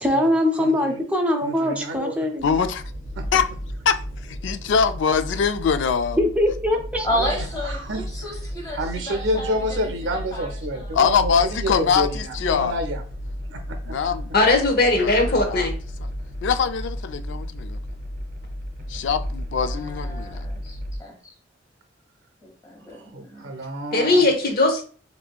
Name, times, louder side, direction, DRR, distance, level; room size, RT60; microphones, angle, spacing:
voice 1, 0.0-2.5 6.1-7.1, left 1 dB, 5° right, 0.6 m, -22 dB
voice 2, 0.6-1.0 1.4-2.2 3.2-3.3 7.1-8.1 8.7-13.0 13.5-14.0 22.9-24.3, equal, 85° right, 0.6 m, -29 dB
voice 3, 2.4-2.8 3.3-3.5 3.9-6.2 10.9-12.8 13.9-14.3 15.0-15.1 15.4-15.7 16.4-17.8 18.9-20.4, left 6 dB, 75° left, 0.3 m, -23 dB
sound 1, 2.4-21.0, equal, 45° right, 0.7 m, -33 dB
voice 4, 7.0-8.8 9.1-9.8 10.1-11.0 19.6-21.2 22.4-23.5, equal, 20° left, 1.2 m, -32 dB
voice 5, 14.3-15.7 23.9-24.8, left 2 dB, 55° left, 0.9 m, -19 dB
4.3 x 2.7 x 2.3 m
head